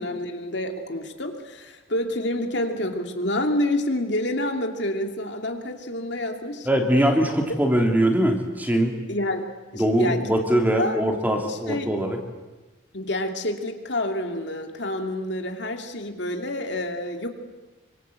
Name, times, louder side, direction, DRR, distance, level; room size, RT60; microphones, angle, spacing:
voice 1, 0.0-6.7 9.1-10.2 10.8-11.0 11.4-11.9 12.9-17.3, left 1 dB, 60° left, 4 dB, 2.6 m, -28 dB
voice 2, 6.6-9.0 9.7-12.2, right 1 dB, 10° right, 2 dB, 3.1 m, -22 dB
27.0 x 24.5 x 8.3 m, 1.2 s
head